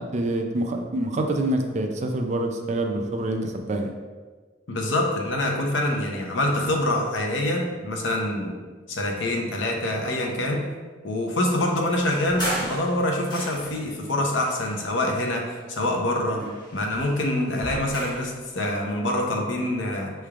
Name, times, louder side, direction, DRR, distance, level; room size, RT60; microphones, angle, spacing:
voice 1, 0.0-3.9 16.3-16.5, right 1 dB, 40° right, 4 dB, 0.4 m, -26 dB
voice 2, 4.7-8.6 8.9-10.6 11.0-16.4 16.7-20.1, left 1 dB, 85° left, 1 dB, 0.7 m, -25 dB
sound 1, 12.1-13.9 14.6-15.8 16.1-18.3, right 1 dB, 25° left, 1.3 m, -35 dB
5.6 x 3.2 x 2.4 m, 1.4 s
head